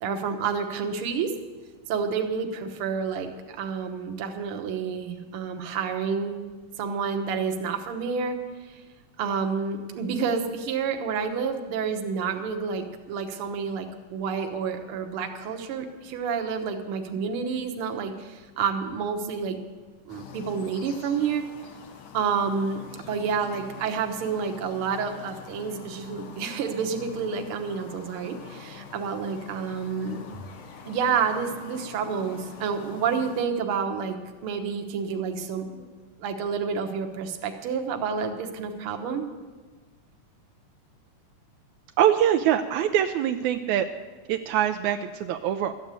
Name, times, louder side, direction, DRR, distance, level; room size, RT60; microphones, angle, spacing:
voice 1, 0.0-1.3 1.9-6.4 6.8-8.4 8.6-8.7 9.2-19.6 20.1-21.5 22.1-22.8 23.1-30.2 30.8-34.2 34.4-35.9 36.2-39.2, right 6 dB, 60° right, 5 dB, 1.6 m, -29 dB
sound 1, 20.1-33.5, left 6 dB, 60° left, 1.5 m, -45 dB
voice 2, 42.0-43.9 44.3-45.7, right 10 dB, 80° right, 6 dB, 1.8 m, -23 dB
13.0 x 9.0 x 8.2 m, 1.3 s
omnidirectional pair, 3.4 m